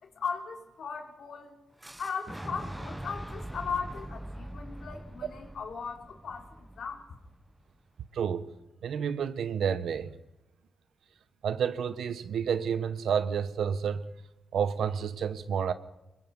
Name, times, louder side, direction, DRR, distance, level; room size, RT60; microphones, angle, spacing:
voice 1, 0.0-1.6 2.0-7.1, left 5 dB, 70° left, 3.3 m, -37 dB
Boom, 1.8-7.7, right 1 dB, 10° right, 0.8 m, -43 dB
voice 2, 8.1-8.5 8.8-10.1 11.4-14.0 14.5-15.7, right 7 dB, 80° right, 1.1 m, -30 dB
23.5 x 22.0 x 5.4 m
cardioid pair, 80°, 0 cm